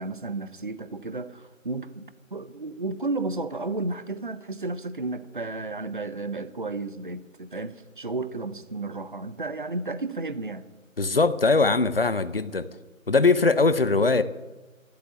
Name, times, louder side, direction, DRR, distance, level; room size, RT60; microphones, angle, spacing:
voice 1, 0.0-10.7, right 3 dB, 40° right, 14 dB, 0.7 m, -33 dB
voice 2, 11.0-12.7 13.1-14.2, left 3 dB, 45° left, 14 dB, 0.8 m, -21 dB
13.0 x 8.4 x 9.0 m, 1.1 s
figure-of-eight pair, 170°, 40 cm